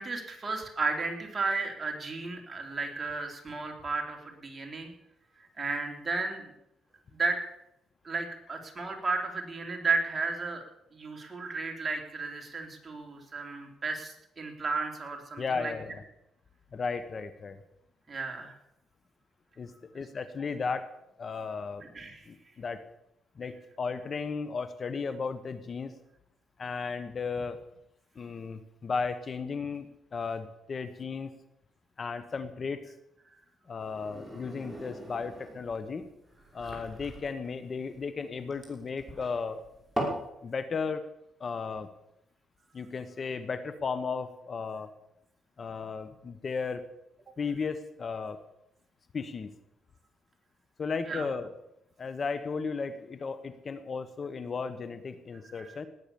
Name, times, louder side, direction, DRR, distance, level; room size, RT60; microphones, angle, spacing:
voice 1, 0.0-4.9 5.4-6.5 7.1-7.4 8.0-10.6 10.9-15.7 18.1-18.6 21.8-22.2 51.1-51.3 55.5-55.8, right 3 dB, 30° right, 2 dB, 3.7 m, -33 dB
voice 2, 15.4-16.0 16.7-17.6 19.6-20.9 21.2-21.8 22.3-22.8 23.4-25.9 26.6-27.6 28.1-31.3 32.0-32.9 33.7-36.1 36.5-39.6 40.4-41.0 41.4-41.9 42.7-44.9 45.6-46.8 47.4-48.4 49.1-49.5 50.8-51.5 52.0-55.9, left 5 dB, 40° left, 11 dB, 1.2 m, -35 dB
sound 1, 33.8-40.3, right 1 dB, 5° right, 5.9 m, -39 dB
19.0 x 9.2 x 7.1 m, 0.81 s
cardioid pair, 90°, 0 cm